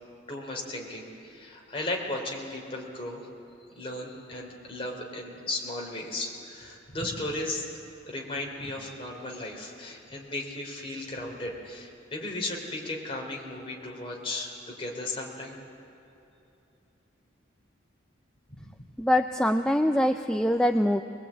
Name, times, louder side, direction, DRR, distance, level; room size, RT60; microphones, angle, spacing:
voice 1, 0.3-3.3 3.7-15.6 18.6-18.7, left 2 dB, 30° left, -1 dB, 3.4 m, -36 dB
voice 2, 19.0-21.0, left 1 dB, 5° left, 5 dB, 0.4 m, -23 dB
21.5 x 21.5 x 8.7 m, 2.9 s
head